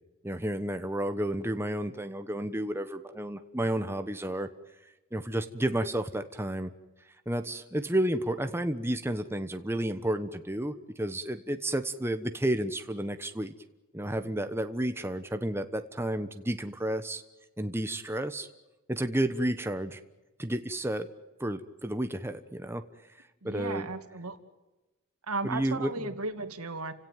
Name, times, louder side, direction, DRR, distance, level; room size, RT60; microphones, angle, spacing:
voice 1, 0.2-4.5 5.1-6.7 7.3-13.5 13.9-17.2 17.6-18.5 18.9-20.0 20.4-21.1 21.4-22.8 23.4-23.9 25.4-26.1, right 1 dB, 10° right, 8 dB, 1.1 m, -31 dB
voice 2, 23.4-24.4 25.3-26.9, right 3 dB, 85° right, 9 dB, 2.3 m, -35 dB
30.0 x 17.5 x 9.2 m, 1.1 s
head